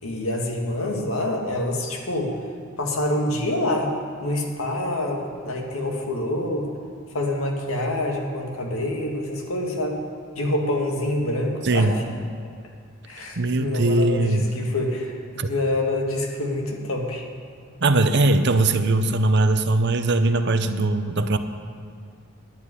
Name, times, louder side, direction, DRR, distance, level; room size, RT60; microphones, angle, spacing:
voice 1, 0.0-2.3 2.8-3.9 4.2-6.7 7.1-10.0 10.4-12.0 13.1-17.2, left 1 dB, 85° left, 0 dB, 1.9 m, -26 dB
voice 2, 11.6-12.0 13.4-14.5 15.4-15.5 17.8-21.4, right 2 dB, 55° right, 9 dB, 0.7 m, -20 dB
11.0 x 7.5 x 9.7 m, 2.1 s
head